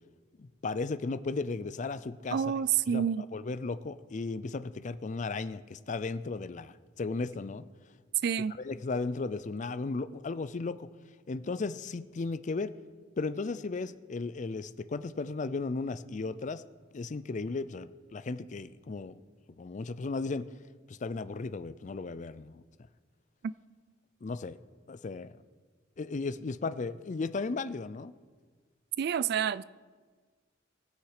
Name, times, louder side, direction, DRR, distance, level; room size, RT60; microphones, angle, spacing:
voice 1, 0.4-2.4 2.9-7.7 8.6-10.9 11.3-12.7 13.2-16.6 16.9-19.2 19.6-20.5 20.9-22.6 24.2-24.6 24.9-25.4 26.0-28.2, left 3 dB, 40° left, 15 dB, 0.4 m, -35 dB
voice 2, 2.3-3.3 8.2-8.5 23.4-23.5 29.0-29.6, right 8 dB, 55° right, 18 dB, 0.3 m, -28 dB
19.0 x 6.5 x 4.9 m, 1.5 s
head